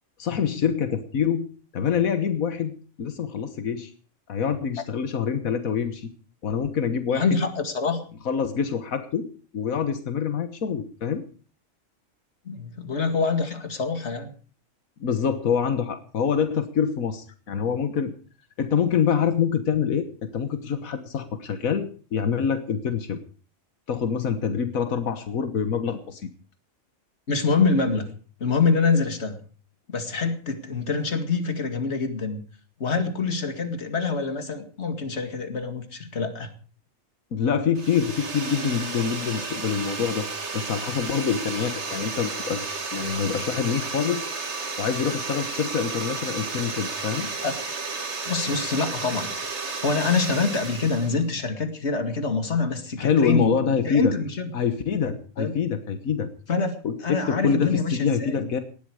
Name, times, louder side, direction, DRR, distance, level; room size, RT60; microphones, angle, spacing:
voice 1, 0.2-1.5 1.7-3.9 4.3-6.1 6.4-7.4 8.2-9.3 9.5-11.2 15.0-18.1 18.6-20.1 20.3-23.2 23.9-26.3 37.3-40.3 40.5-44.2 44.8-47.3 53.0-54.1 54.5-56.3 56.8-58.6, left 7 dB, 85° left, 10 dB, 1.7 m, -25 dB
voice 2, 7.1-8.0 12.5-14.3 27.3-28.1 28.4-29.4 29.9-32.4 32.8-36.5 47.4-47.6 48.3-49.3 49.6-54.5 55.4-55.5 56.5-56.7 57.0-58.5, left 4 dB, 55° left, 8 dB, 2.4 m, -25 dB
sound 1, 37.7-51.2, right 4 dB, 55° right, 2.2 m, -33 dB
18.5 x 13.0 x 4.8 m, 0.39 s
omnidirectional pair, 1.4 m